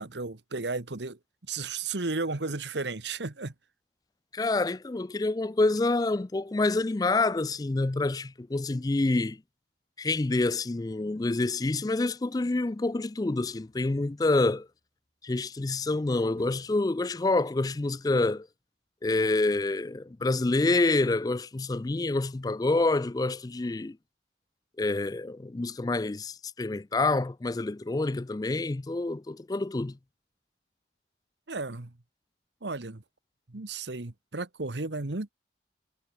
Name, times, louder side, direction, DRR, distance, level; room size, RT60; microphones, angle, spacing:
voice 1, 0.0-3.5 31.5-31.9 32.6-33.0 33.5-35.3, right 3 dB, 80° right, 1.4 m, -34 dB
voice 2, 4.3-9.4 10.0-14.7 15.2-18.5 19.0-24.0 24.8-30.0, left 2 dB, 20° left, 0.4 m, -27 dB
sound 1, 13.4-15.1 16.4-17.9 18.2-18.3, right 1 dB, 60° right, 3.5 m, -61 dB
head